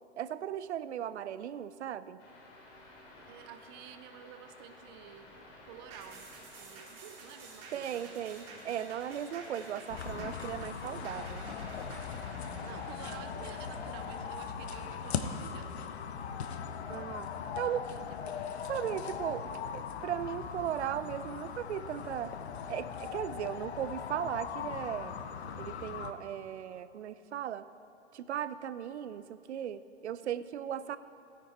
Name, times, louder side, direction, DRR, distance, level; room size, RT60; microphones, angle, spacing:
voice 1, 0.2-2.2 7.7-11.5 16.9-17.3 17.6-17.8 18.6-22.4 22.7-25.2 25.6-27.7 28.1-31.0, right 10 dB, 75° right, 14 dB, 0.6 m, -37 dB
sound 1, 2.2-14.2, left 2 dB, 45° left, 3.1 m, -53 dB
voice 2, 3.3-5.3 5.7-8.8 12.6-15.9 16.7-17.0 17.9-18.4, right 10 dB, 25° right, 8 dB, 0.4 m, -51 dB
sound 2, 5.9-14.6 15.0-15.1, right 4 dB, 40° right, 2.5 m, -52 dB
sound 3, 9.9-26.1, left 7 dB, 65° left, 1.0 m, -40 dB
16.5 x 9.7 x 4.3 m, 2.6 s
hypercardioid pair, 140°, 34 cm